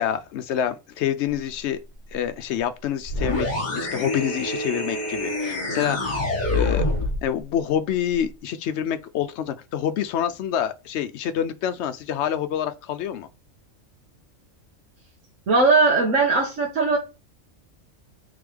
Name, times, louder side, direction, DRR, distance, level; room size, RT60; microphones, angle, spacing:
voice 1, 0.0-1.8 2.1-6.2 6.5-6.9 7.2-13.3, left 9 dB, 65° left, 0.8 m, -27 dB
sound 1, 3.1-7.2, left 2 dB, 35° left, 1.4 m, -26 dB
voice 2, 15.5-17.0, right 3 dB, 70° right, 1.5 m, -19 dB
3.7 x 3.5 x 3.3 m
omnidirectional pair, 1.4 m